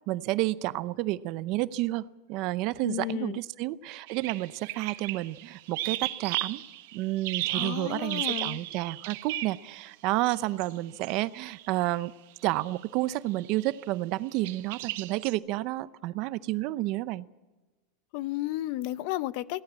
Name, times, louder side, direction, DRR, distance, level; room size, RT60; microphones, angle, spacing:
voice 1, 0.1-6.6 6.9-12.1 12.4-17.3, right 17 dB, 40° right, 16 dB, 0.7 m, -30 dB
voice 2, 2.8-3.4 7.5-8.6 18.1-19.6, left 16 dB, 45° left, 17 dB, 0.7 m, -33 dB
sound 1, 4.1-9.7 10.2-10.8 11.0-11.1 11.5-11.7 12.5-12.8 13.4-13.7 14.4-15.3, right 16 dB, 55° right, 1.4 m, -35 dB
22.0 x 17.0 x 7.5 m, 1.2 s
supercardioid pair, 165°, 0 cm